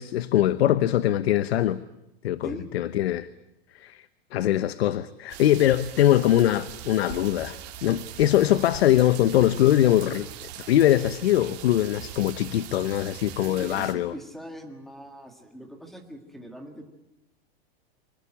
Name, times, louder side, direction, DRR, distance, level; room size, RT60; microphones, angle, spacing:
voice 1, 0.0-1.8 2.2-3.3 3.7-4.1 4.3-10.3 10.7-14.1, left 12 dB, 85° left, 0.9 m, -22 dB
sound 1, 5.3-13.9, right 12 dB, 40° right, 3.1 m, -41 dB
voice 2, 13.4-16.9, equal, ahead, 1.7 m, -41 dB
25.5 x 19.0 x 8.9 m
supercardioid pair, 180°, 31 cm